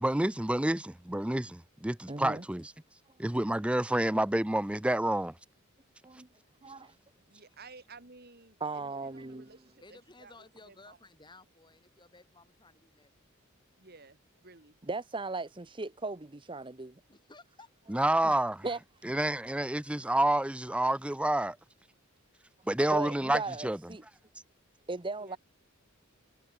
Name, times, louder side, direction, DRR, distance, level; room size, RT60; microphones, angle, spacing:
voice 1, 0.0-2.7 3.2-5.4 17.9-18.6 19.0-21.6 22.7-23.8, right 1 dB, 5° right, 0.5 m, -29 dB
voice 2, 2.1-2.4 6.0-6.3 6.6-6.9 8.6-9.5 14.8-17.0 18.2-18.3 18.6-18.8 22.9-24.0 24.9-25.4, right 3 dB, 25° right, 0.9 m, -37 dB
voice 3, 6.6-7.0 9.8-13.1 17.1-17.7, left 3 dB, 20° left, 5.5 m, -56 dB
voice 4, 7.3-10.4 10.6-11.0 13.8-14.8 25.2-25.4, right 3 dB, 50° right, 4.1 m, -54 dB
head